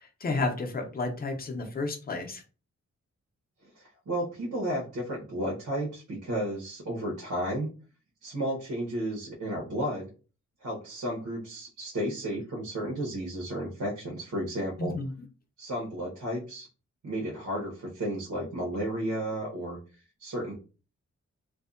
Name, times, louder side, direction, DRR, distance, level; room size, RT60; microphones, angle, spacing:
voice 1, 0.2-2.4 14.8-15.1, left 3 dB, 30° left, 4 dB, 0.5 m, -31 dB
voice 2, 3.6-7.7 8.2-10.1 10.6-15.0 15.6-16.7 17.0-19.8 20.2-20.6, right 1 dB, 85° right, -3 dB, 0.8 m, -33 dB
2.6 x 2.1 x 2.4 m, 0.34 s
wide cardioid pair, 160°, 30 cm